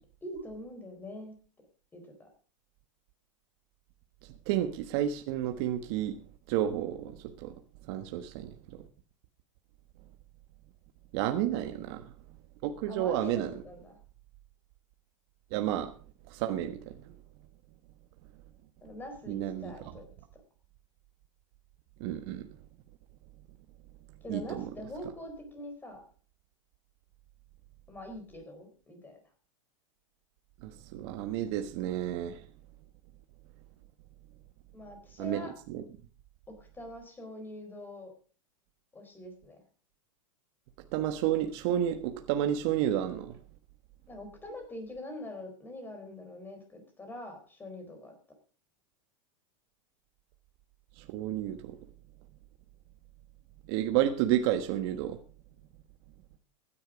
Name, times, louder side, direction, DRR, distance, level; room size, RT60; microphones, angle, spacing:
voice 1, 0.2-1.3 1.9-2.3 11.4-12.0 12.9-14.0 18.8-20.1 24.2-26.0 27.9-29.2 34.7-35.5 36.5-38.1 38.9-39.6 44.1-48.1, left 1 dB, 10° left, 5 dB, 4.3 m, -44 dB
voice 2, 4.5-6.2 6.5-7.5 7.9-8.5 11.1-12.0 12.6-13.5 15.5-15.9 16.3-17.1 19.3-19.7 22.0-22.5 24.3-24.7 30.6-32.4 35.2-35.4 35.7-35.8 40.9-43.4 51.0-51.8 53.7-55.2, right 11 dB, 50° right, 6 dB, 1.3 m, -31 dB
15.5 x 10.5 x 5.1 m, 0.39 s
supercardioid pair, 145°, 17 cm